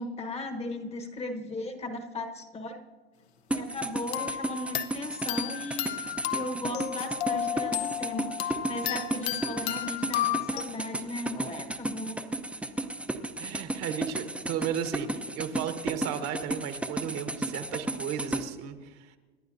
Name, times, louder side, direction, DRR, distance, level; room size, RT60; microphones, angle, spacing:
voice 1, 0.0-2.8 3.5-12.2, left 2 dB, 20° left, 7 dB, 1.2 m, -37 dB
sound 1, 3.5-18.4, right 2 dB, 5° right, 0.7 m, -33 dB
sound 2, 4.1-10.6, left 11 dB, 70° left, 1.1 m, -33 dB
voice 2, 13.4-19.2, right 9 dB, 45° right, 8 dB, 1.3 m, -34 dB
27.5 x 11.0 x 2.7 m, 1.4 s
hypercardioid pair, 105°, 33 cm